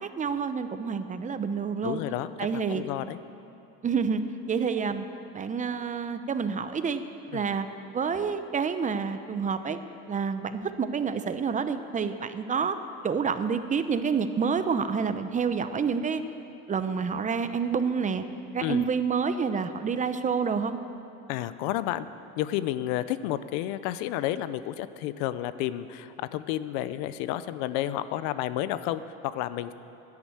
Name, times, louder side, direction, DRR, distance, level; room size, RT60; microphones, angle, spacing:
voice 1, 0.0-2.0 2.4-2.8 3.8-4.2 4.5-5.0 5.3-7.0 7.3-7.7 7.9-9.8 10.1-12.8 13.0-16.2 16.7-18.2 18.5-20.8, right 6 dB, 25° right, 10 dB, 0.8 m, -28 dB
voice 2, 1.8-3.2 7.3-7.4 18.6-18.9 21.3-22.1 22.4-29.7, left 13 dB, 80° left, 14 dB, 0.7 m, -31 dB
11.0 x 11.0 x 9.0 m, 2.7 s
supercardioid pair, 110°, 30 cm